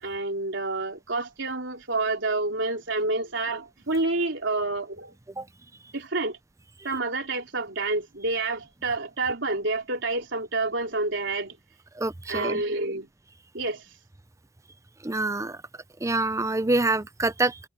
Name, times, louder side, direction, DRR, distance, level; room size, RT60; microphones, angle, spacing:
voice 1, 0.0-5.1 5.9-6.4 6.8-11.6 12.3-13.1 13.5-13.9, right 2 dB, 65° right, 4.3 m, -28 dB
voice 2, 12.0-12.6 15.0-15.6 16.0-17.6, right 2 dB, 15° right, 0.6 m, -26 dB
head